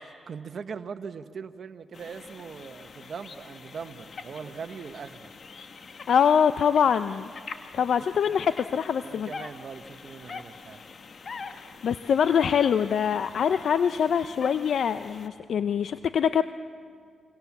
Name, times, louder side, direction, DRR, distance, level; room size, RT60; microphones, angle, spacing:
voice 1, 0.3-5.3 8.3-8.4 9.0-10.8, right 6 dB, 60° right, 9 dB, 1.2 m, -40 dB
sound 1, 1.9-15.3, left 4 dB, 55° left, 1.5 m, -44 dB
voice 2, 6.1-7.3 7.7-9.3 11.8-16.4, left 7 dB, 70° left, 11 dB, 0.6 m, -24 dB
29.5 x 24.0 x 7.3 m, 2.2 s
cardioid pair, 65°, 0 cm